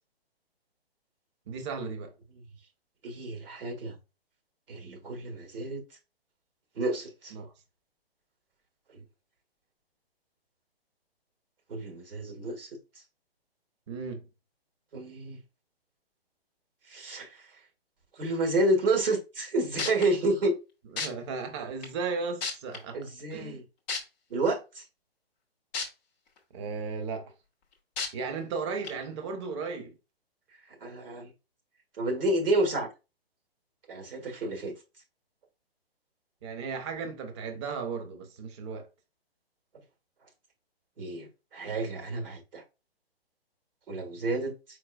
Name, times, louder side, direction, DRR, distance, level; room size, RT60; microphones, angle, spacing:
voice 1, 1.5-2.1 7.3-7.5 13.9-14.3 20.9-23.6 26.5-27.3 28.1-29.9 36.4-38.9, right 5 dB, 30° right, 0.8 m, -35 dB
voice 2, 3.0-4.0 4.7-5.8 6.8-7.3 8.9-9.0 11.7-12.7 14.9-15.4 16.9-17.4 18.2-20.5 22.9-23.6 24.3-24.8 30.8-31.3 32.0-32.9 33.9-34.7 41.0-42.6 43.9-44.5, right 2 dB, 60° right, 1.8 m, -30 dB
sound 1, 19.4-19.5 19.8-20.1 21.0-21.1 21.8-21.9 22.4-22.8 23.9-24.0 25.7-25.9 26.4-26.5 28.0-28.1 28.8-28.9, left 5 dB, 10° left, 0.4 m, -31 dB
4.5 x 4.4 x 2.3 m
figure-of-eight pair, 130°, 31 cm